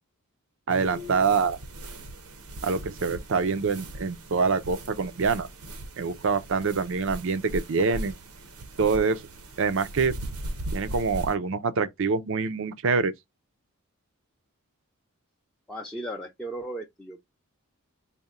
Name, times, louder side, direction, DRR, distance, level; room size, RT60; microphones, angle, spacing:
voice 1, 0.7-1.6 2.6-5.5 6.0-8.1 8.8-9.2 9.6-10.2 10.7-13.1, right 5 dB, 60° right, 0.5 m, -25 dB
sound 1, 0.7-11.3, right 1 dB, 85° right, 0.9 m, -39 dB
voice 2, 15.7-17.2, right 1 dB, 5° left, 0.5 m, -36 dB
4.1 x 2.2 x 3.6 m
head